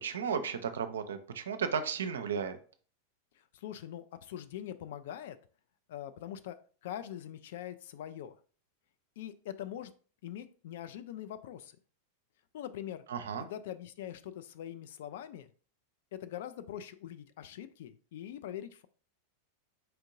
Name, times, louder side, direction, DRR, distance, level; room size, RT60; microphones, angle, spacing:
voice 1, 0.0-2.6 13.1-13.5, right 6 dB, 65° right, 10 dB, 0.5 m, -34 dB
voice 2, 3.4-5.4 5.9-8.4 9.2-9.9 10.2-11.8 12.5-13.0 13.4-15.5 16.1-18.9, left 11 dB, 55° left, 11 dB, 0.3 m, -43 dB
4.5 x 3.6 x 2.5 m, 0.41 s
figure-of-eight pair, 90°, 0 cm